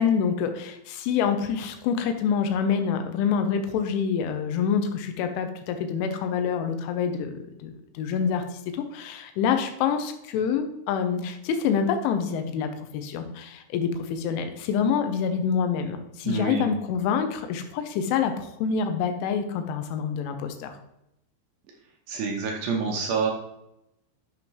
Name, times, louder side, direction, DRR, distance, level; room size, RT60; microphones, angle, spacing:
voice 1, 0.0-8.4 8.7-20.7, left 7 dB, 85° left, 7 dB, 3.3 m, -26 dB
voice 2, 16.2-16.7 22.1-23.3, right 5 dB, 70° right, 0 dB, 2.8 m, -27 dB
10.5 x 7.6 x 3.1 m, 0.85 s
omnidirectional pair, 5.7 m